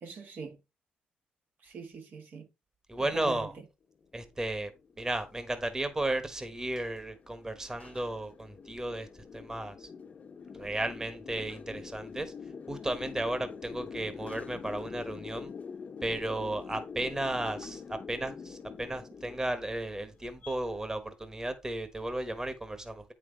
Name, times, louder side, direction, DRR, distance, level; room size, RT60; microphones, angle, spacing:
voice 1, 0.0-0.6 1.6-2.5 3.0-3.7, right 5 dB, 65° right, 1.5 m, -43 dB
voice 2, 2.9-3.5 4.1-4.7 5.0-9.1 9.3-9.9 10.6-12.3 12.7-15.5 16.0-23.0, right 1 dB, 20° right, 1.3 m, -34 dB
sound 1, 4.3-20.6, left 5 dB, 45° left, 0.7 m, -45 dB
8.6 x 6.0 x 3.4 m
cardioid pair, 85°, 3 cm